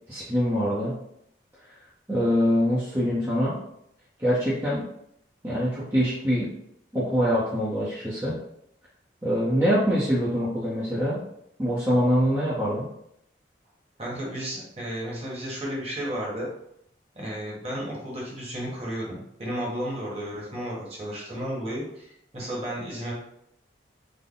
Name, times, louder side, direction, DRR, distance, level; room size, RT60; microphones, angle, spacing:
voice 1, 0.1-1.0 2.1-3.6 4.2-4.8 5.4-6.5 6.9-8.4 9.2-11.2 11.6-12.9, equal, 15° right, -9 dB, 0.7 m, -24 dB
voice 2, 14.0-16.5 17.1-22.1 22.3-23.1, equal, 35° right, -4 dB, 1.2 m, -33 dB
3.9 x 2.1 x 3.8 m, 0.75 s
head